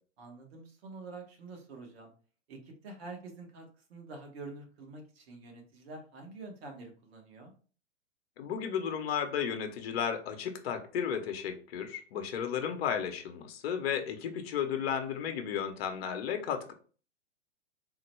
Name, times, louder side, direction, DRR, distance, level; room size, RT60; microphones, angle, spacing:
voice 1, 0.2-2.1 2.5-7.5, right 3 dB, 55° right, 3 dB, 1.2 m, -47 dB
voice 2, 8.4-16.7, left 8 dB, 55° left, 6 dB, 0.7 m, -34 dB
3.8 x 2.1 x 3.0 m, 0.39 s
hypercardioid pair, 120°, 36 cm